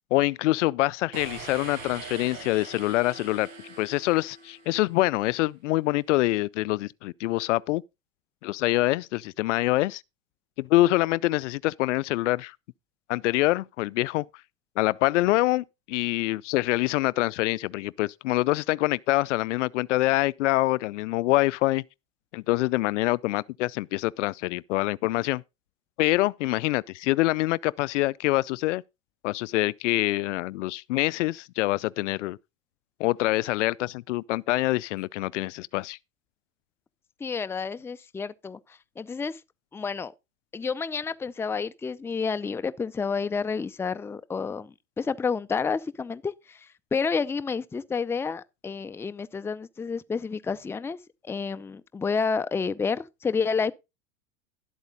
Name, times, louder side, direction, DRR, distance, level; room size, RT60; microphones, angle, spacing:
voice 1, 0.1-3.5 3.8-7.8 8.4-10.0 10.6-12.6 13.1-14.3 14.8-21.8 22.3-25.4 26.0-28.8 29.2-32.4 33.0-36.0, left 18 dB, 65° left, 0.5 m, -25 dB
sound 1, 1.1-4.9, right 4 dB, 75° right, 7.5 m, -42 dB
voice 2, 37.2-39.4 39.7-40.1 40.5-51.0 51.2-53.7, left 5 dB, 5° left, 0.5 m, -30 dB
12.0 x 8.1 x 3.9 m
hypercardioid pair, 90°, 39 cm